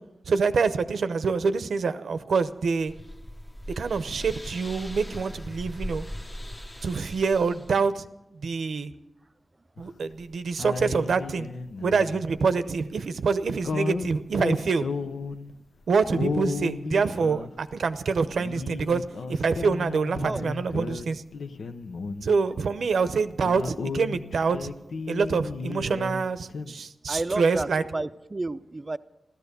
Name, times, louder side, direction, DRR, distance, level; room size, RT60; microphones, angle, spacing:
voice 1, 0.3-2.9 3.8-6.0 6.8-8.0 8.3-8.9 9.8-11.5 11.8-14.9 15.9-21.2 22.2-24.7 25.1-27.8, right 5 dB, 85° right, 12 dB, 0.8 m, -26 dB
sound 1, 2.5-7.8, equal, 15° left, 0.9 m, -39 dB
sound 2, 9.8-10.2 10.6-12.4 13.6-15.5 16.1-17.8 18.3-21.1 21.3-22.6 22.8-22.9 23.3-26.2 26.5-26.7, left 4 dB, 80° left, 0.8 m, -34 dB
voice 2, 20.2-20.5 27.1-29.0, right 2 dB, 25° right, 14 dB, 0.5 m, -31 dB
14.5 x 13.5 x 6.8 m, 0.91 s
wide cardioid pair, 125°, 0 cm